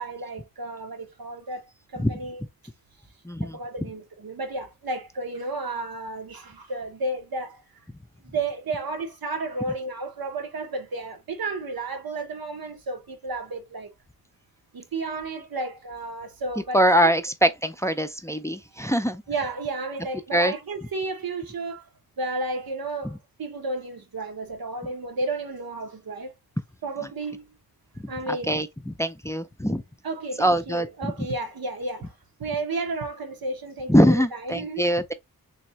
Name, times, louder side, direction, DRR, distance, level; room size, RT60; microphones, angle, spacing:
voice 1, 0.0-2.4 3.4-7.6 8.2-13.9 14.7-16.8 19.3-21.9 22.2-26.3 26.8-27.4 28.1-28.6 30.0-32.1 32.4-34.9, right 2 dB, 80° right, 1.0 m, -32 dB
voice 2, 3.2-3.6 16.7-19.2 20.3-20.5 28.0-28.1 28.5-29.8 30.4-31.1 33.9-35.1, equal, 10° left, 0.4 m, -22 dB
3.4 x 3.2 x 2.9 m
wide cardioid pair, 75°, 35 cm